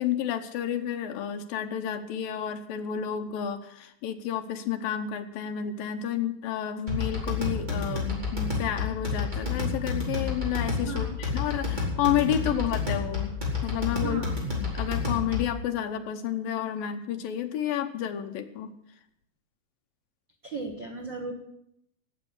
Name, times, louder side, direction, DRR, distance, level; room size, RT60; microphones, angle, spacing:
voice 1, 0.0-13.3 13.6-14.2 14.6-18.7, left 10 dB, 75° left, 7 dB, 2.7 m, -30 dB
sound 1, 6.9-15.6, left 4 dB, 10° right, 4.4 m, -30 dB
voice 2, 10.9-11.2 12.5-12.6 14.0-14.4 20.4-21.3, right 4 dB, 60° right, 2 dB, 1.2 m, -36 dB
18.0 x 8.2 x 8.0 m, 0.76 s
omnidirectional pair, 4.4 m